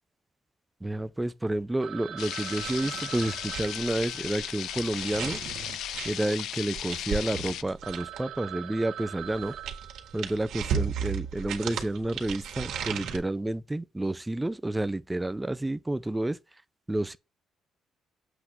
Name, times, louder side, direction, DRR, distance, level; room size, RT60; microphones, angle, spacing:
voice 1, 0.8-5.4 6.0-9.5 10.1-16.4 16.9-17.2, right 1 dB, 10° right, 0.5 m, -30 dB
Telephone, 1.8-6.2 6.4-6.5 7.1-7.2 7.5-7.6 7.8-10.8, right 10 dB, 60° right, 0.6 m, -43 dB
sound 1, 2.2-7.6, left 11 dB, 75° left, 0.4 m, -36 dB
sound 2, 2.6-8.4 9.2-13.2, right 7 dB, 80° right, 1.8 m, -35 dB
7.9 x 3.4 x 6.0 m
cardioid pair, 125°, 0 cm